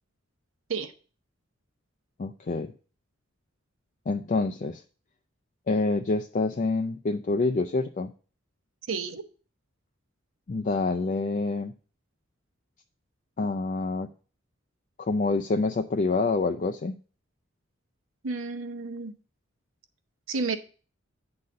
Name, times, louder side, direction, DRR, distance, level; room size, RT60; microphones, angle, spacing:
voice 1, 2.2-2.7 4.1-4.8 5.7-8.1 10.5-11.7 13.4-14.1 15.0-17.0, left 3 dB, 40° left, 6 dB, 0.4 m, -27 dB
voice 2, 8.9-9.2 18.2-19.1 20.3-20.6, right 4 dB, 75° right, 9 dB, 0.8 m, -31 dB
8.6 x 4.0 x 6.4 m, 0.38 s
head